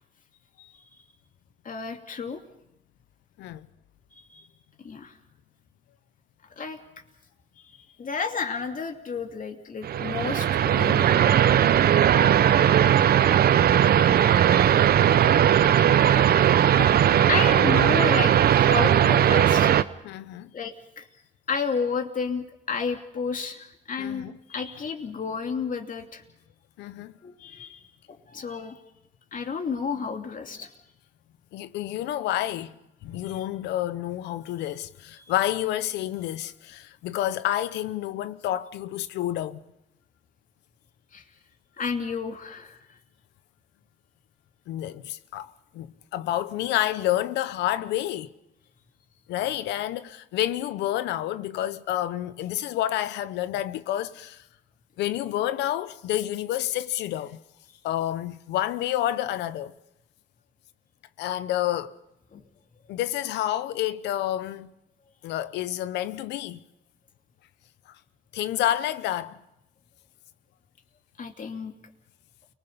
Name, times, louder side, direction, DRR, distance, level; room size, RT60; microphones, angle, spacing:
voice 1, 0.6-1.0 1.6-2.4 4.1-4.5 4.8-5.2 6.6-6.8 8.0-11.1 16.8-16.9 17.3-19.7 20.5-21.1 21.5-26.2 27.2-27.8 28.1-28.8 29.3-30.7 33.2-33.5 41.1-41.2 41.8-42.8 62.3-62.5 71.2-71.7, left 5 dB, 50° left, 2.7 m, -31 dB
sound 1, 9.8-19.8, right 10 dB, 65° right, 0.7 m, -19 dB
voice 2, 20.0-20.5 24.0-24.4 26.8-27.2 31.5-32.7 33.0-39.6 44.7-48.3 49.3-54.4 55.0-57.4 57.8-59.7 61.2-61.9 62.9-64.7 65.2-66.6 68.3-69.4, left 13 dB, 90° left, 0.8 m, -29 dB
29.5 x 20.0 x 5.4 m
supercardioid pair, 65°, 17 cm